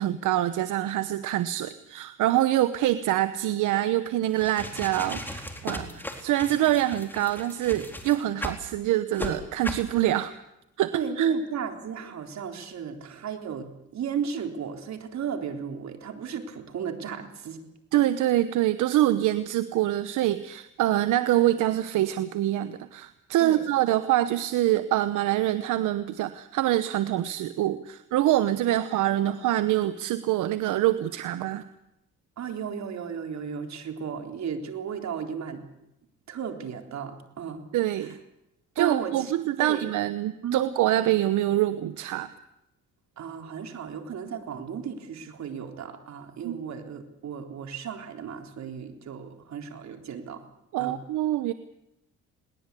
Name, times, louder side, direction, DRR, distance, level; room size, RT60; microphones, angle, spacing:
voice 1, 0.0-10.3 10.8-11.3 17.9-31.6 37.7-38.1 38.8-42.3 46.4-46.6 50.7-51.5, right 13 dB, 85° right, 12 dB, 1.0 m, -25 dB
sound 1, 4.3-8.6 9.1-9.3 9.6-9.9, left 1 dB, 5° left, 4.0 m, -36 dB
voice 2, 10.9-17.6 23.4-23.6 32.4-35.6 36.3-37.6 38.0-38.2 38.8-39.3 39.6-39.8 40.4-40.6 43.2-50.4 50.8-51.0, right 7 dB, 65° right, 5 dB, 3.8 m, -34 dB
21.5 x 19.5 x 8.4 m, 0.85 s
cardioid pair, 90°, 30 cm